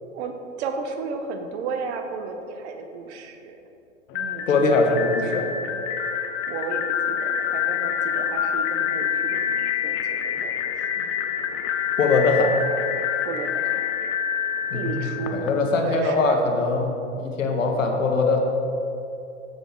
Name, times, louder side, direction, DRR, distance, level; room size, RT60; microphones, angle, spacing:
voice 1, 0.0-3.6 4.1-5.8 6.5-11.3 13.2-14.0 14.7-15.5 15.8-16.4 17.4-17.8, right 4 dB, 60° right, 5 dB, 1.0 m, -34 dB
sound 1, 4.1-15.9, left 8 dB, 35° left, 0.5 m, -27 dB
voice 2, 4.5-5.5 12.0-12.5 14.7-15.0 15.3-18.4, left 3 dB, 85° left, 3 dB, 1.1 m, -21 dB
7.1 x 6.3 x 3.8 m, 2.7 s
hypercardioid pair, 105°, 37 cm